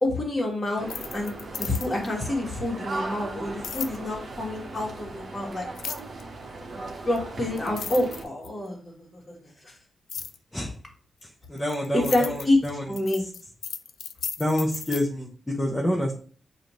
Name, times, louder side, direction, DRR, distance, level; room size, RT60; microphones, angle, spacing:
voice 1, 0.0-5.7 6.7-9.7 11.9-12.6 12.9-13.2, left 1 dB, 25° left, -1 dB, 1.5 m, -28 dB
sound 1, 0.8-2.1 3.6-4.0 5.8-6.2 7.2-7.3 7.6-8.7 10.1-10.4 11.2-15.0, left 7 dB, 85° left, 0.3 m, -35 dB
sound 2, 0.8-8.2, right 3 dB, 55° right, 0.8 m, -38 dB
voice 2, 11.2-12.9 14.4-16.2, left 1 dB, 5° left, -2 dB, 0.6 m, -28 dB
6.9 x 2.6 x 3.0 m, 0.43 s
wide cardioid pair, 135°, 0 cm